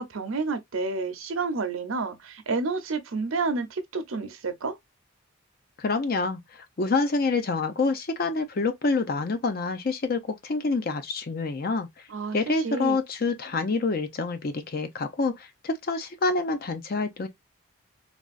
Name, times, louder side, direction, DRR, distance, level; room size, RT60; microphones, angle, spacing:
voice 1, 0.0-4.8 12.1-13.0, right 4 dB, 75° right, 0.7 m, -30 dB
voice 2, 5.8-11.9 12.3-17.3, left 3 dB, 45° left, 0.5 m, -27 dB
3.3 x 2.4 x 2.4 m
head